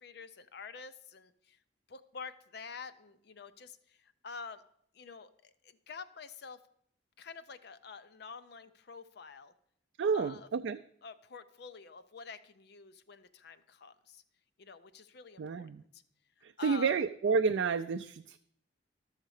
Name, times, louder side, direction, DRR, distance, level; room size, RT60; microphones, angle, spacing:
voice 1, 0.0-1.6 1.9-4.6 4.9-6.6 7.2-9.5 10.1-10.5 11.0-14.2 14.6-16.0 16.6-17.0, left 5 dB, 60° left, 12 dB, 0.5 m, -48 dB
voice 2, 10.0-10.8 15.4-15.8 16.4-18.4, right 5 dB, 75° right, 8 dB, 0.4 m, -30 dB
12.5 x 6.5 x 4.8 m, 0.67 s
head